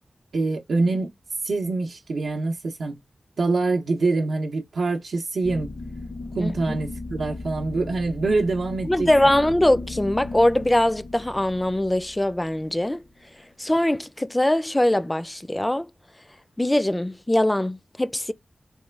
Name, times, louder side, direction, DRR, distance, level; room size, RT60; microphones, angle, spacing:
voice 1, 0.3-1.1 1.4-3.0 3.4-5.7 6.3-9.5, right 3 dB, 90° right, 0.5 m, -25 dB
sound 1, 5.4-13.4, left 2 dB, 60° left, 0.7 m, -37 dB
voice 2, 8.9-13.0 13.6-15.9 16.6-18.3, left 1 dB, 20° left, 0.3 m, -22 dB
3.1 x 2.2 x 3.2 m
cardioid pair, 40°, 0 cm